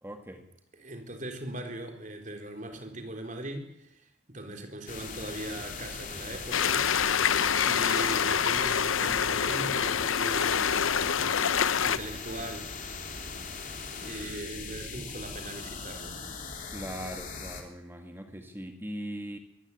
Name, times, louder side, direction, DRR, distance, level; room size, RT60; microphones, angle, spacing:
voice 1, 0.0-0.5 16.7-19.4, equal, 10° right, 5 dB, 1.9 m, -40 dB
voice 2, 0.8-7.1 7.6-13.0 14.0-16.3, right 1 dB, 40° right, 5 dB, 3.8 m, -40 dB
sound 1, 4.9-17.6, left 4 dB, 40° left, 3.5 m, -40 dB
sound 2, 6.5-12.0, left 7 dB, 80° left, 0.8 m, -26 dB
23.5 x 15.0 x 9.7 m, 0.82 s
head